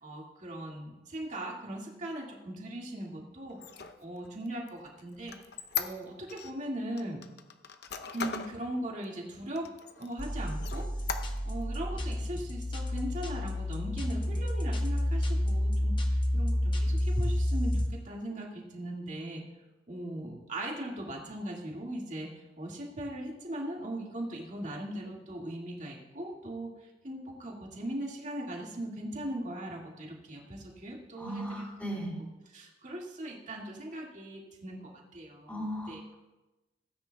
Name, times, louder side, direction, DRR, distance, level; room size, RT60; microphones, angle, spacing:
voice 1, 0.0-3.6 4.0-5.4 5.7-7.2 8.1-9.7 10.0-10.9 11.4-19.4 19.9-26.7 27.0-31.7 31.9-32.0 32.5-36.0, right 1 dB, 45° right, -1 dB, 2.0 m, -39 dB
Squeak, 3.5-6.5 7.0-8.6 9.0-9.1 9.5-10.2 10.6-11.6, left 7 dB, 65° left, 0.7 m, -38 dB
sound 1, 10.2-17.9, left 1 dB, 25° left, 1.1 m, -30 dB
voice 2, 31.2-32.1 35.5-36.2, equal, 10° left, -4 dB, 3.1 m, -37 dB
17.5 x 9.5 x 2.3 m, 1.0 s
head